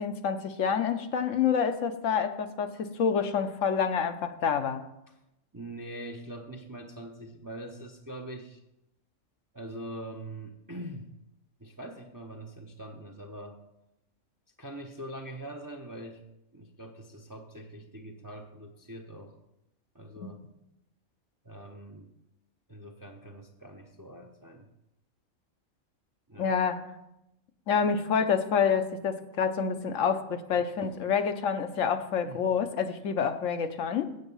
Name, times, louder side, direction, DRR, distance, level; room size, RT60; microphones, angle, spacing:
voice 1, 0.0-4.8 20.2-20.3 26.4-26.9 27.7-34.1, left 6 dB, 70° left, 8 dB, 1.0 m, -28 dB
voice 2, 5.5-8.6 9.5-11.1 11.6-13.6 14.6-16.2 16.5-19.3 19.9-20.4 21.4-22.1 22.7-24.7 26.3-26.5 30.8-31.1 32.2-32.4, right 1 dB, 20° right, 3 dB, 0.6 m, -43 dB
8.0 x 8.0 x 5.4 m, 0.88 s
omnidirectional pair, 1.4 m